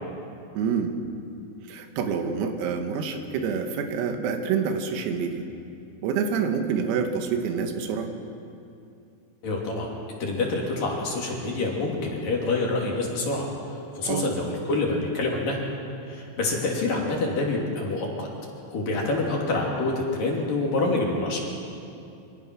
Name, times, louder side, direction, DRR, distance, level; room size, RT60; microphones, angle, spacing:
voice 1, 0.6-1.0 1.7-5.4 6.0-8.1 14.0-14.3, right 6 dB, 90° right, 5 dB, 4.5 m, -27 dB
voice 2, 9.4-9.9 10.2-13.5 13.9-15.6 16.1-18.3 18.7-21.4, left 2 dB, 45° left, -2 dB, 4.0 m, -26 dB
25.5 x 25.5 x 6.2 m, 2.6 s
omnidirectional pair, 6.0 m